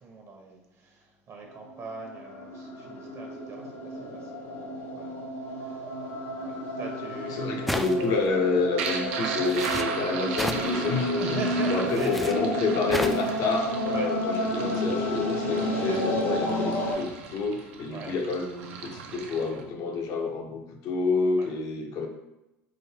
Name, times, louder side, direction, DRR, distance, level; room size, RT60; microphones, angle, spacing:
voice 1, 0.0-4.6 4.9-5.1 5.4-7.7 11.2-12.4 13.9-14.1 17.9-18.2 21.4-21.5, right 3 dB, 45° right, 1 dB, 0.9 m, -40 dB
sound 1, 1.4-16.9, equal, 85° left, 0.9 m, -31 dB
voice 2, 7.3-11.4 11.7-22.1, left 4 dB, 55° left, 3 dB, 0.7 m, -29 dB
sound 2, 7.7-8.2 9.4-9.9 10.4-10.7 11.9-12.3 12.9-13.3, equal, ahead, 0.3 m, -31 dB
sound 3, 7.8-19.6, right 5 dB, 75° right, 0.4 m, -37 dB
3.8 x 2.0 x 3.4 m, 0.94 s
hypercardioid pair, 70°, 7 cm